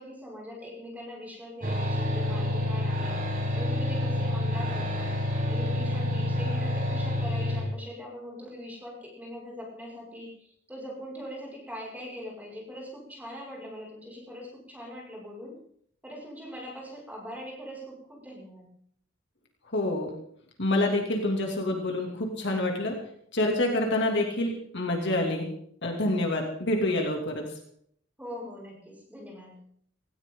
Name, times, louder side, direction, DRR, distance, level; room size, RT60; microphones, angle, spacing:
voice 1, 0.0-5.2 5.5-15.6 16.0-18.7 28.2-29.6, equal, 10° right, -3 dB, 6.1 m, -42 dB
sound 1, 1.6-7.6, left 1 dB, 45° right, 5.6 m, -28 dB
voice 2, 19.7-20.1 20.6-22.9 23.3-25.5 25.8-27.4, left 1 dB, 60° left, 1 dB, 2.9 m, -27 dB
19.0 x 17.5 x 3.9 m, 0.64 s
head